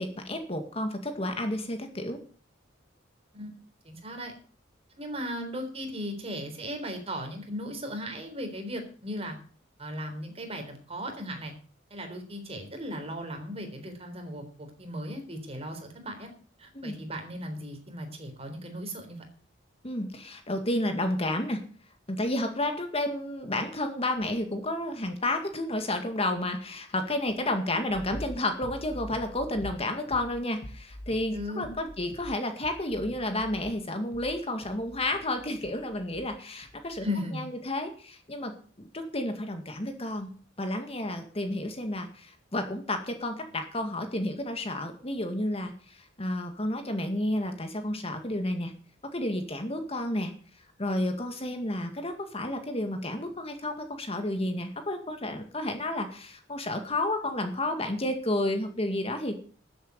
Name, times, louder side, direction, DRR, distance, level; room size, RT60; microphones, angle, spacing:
voice 1, 0.0-2.2 16.7-17.0 19.8-21.6 22.1-37.1 37.3-38.5 38.8-40.3 40.6-48.7 49.1-50.3 50.8-59.4, left 1 dB, 30° left, 6 dB, 2.0 m, -31 dB
voice 2, 3.8-4.3 5.0-9.4 9.8-11.5 11.9-16.3 16.6-19.2 31.3-31.7 37.0-37.4, equal, 30° right, 5 dB, 3.8 m, -37 dB
sound 1, 27.9-36.4 36.6-37.2, left 1 dB, 60° left, 1.4 m, -45 dB
13.5 x 8.0 x 6.8 m, 0.41 s
head